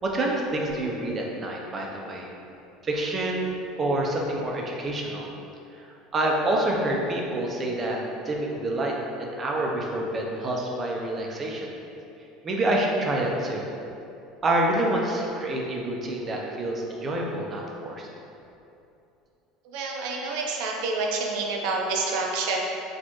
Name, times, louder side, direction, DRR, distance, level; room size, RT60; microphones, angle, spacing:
voice 1, 0.0-2.3 2.8-5.3 5.7-5.9 6.1-11.7 12.4-13.6 14.4-18.1, right 1 dB, 30° right, -1 dB, 0.5 m, -27 dB
voice 2, 19.6-22.6, right 3 dB, 75° right, 0 dB, 0.5 m, -28 dB
4.2 x 2.5 x 2.9 m, 2.8 s
supercardioid pair, 115°, 0 cm